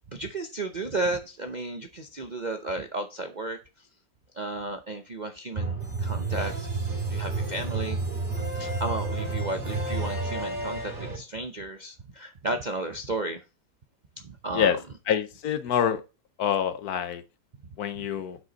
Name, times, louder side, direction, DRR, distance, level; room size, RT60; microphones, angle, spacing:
voice 1, 0.0-3.9 4.3-6.5 7.1-8.0 8.5-13.4 14.2-14.8, right 2 dB, 50° right, 0.5 m, -33 dB
sound 1, 5.5-11.2, right 3 dB, 30° right, 3.0 m, -30 dB
voice 2, 15.1-16.0 16.4-17.2 17.8-18.4, left 8 dB, 70° left, 1.3 m, -26 dB
7.8 x 6.0 x 4.0 m
omnidirectional pair, 1.7 m